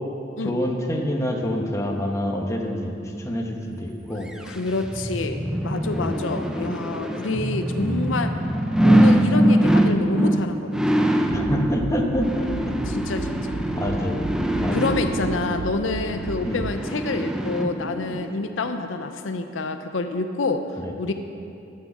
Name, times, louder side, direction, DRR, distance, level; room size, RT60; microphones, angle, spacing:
voice 1, 0.4-4.3 5.9-6.7 7.8-8.2 11.3-12.7 13.7-14.2 14.5-14.9 16.4-16.6 20.8-20.9, equal, 15° left, 1 dB, 1.1 m, -27 dB
sound 1, 4.3-18.2 18.6-18.7, equal, 5° right, 0.5 m, -23 dB
voice 2, 4.5-8.3 8.8-10.8 12.9-13.5 14.7-20.6 21.0-21.1, left 3 dB, 85° left, 8 dB, 0.6 m, -27 dB
sound 2, 11.3-17.1, right 4 dB, 60° right, 0.4 m, -35 dB
15.0 x 6.7 x 6.0 m, 2.7 s
head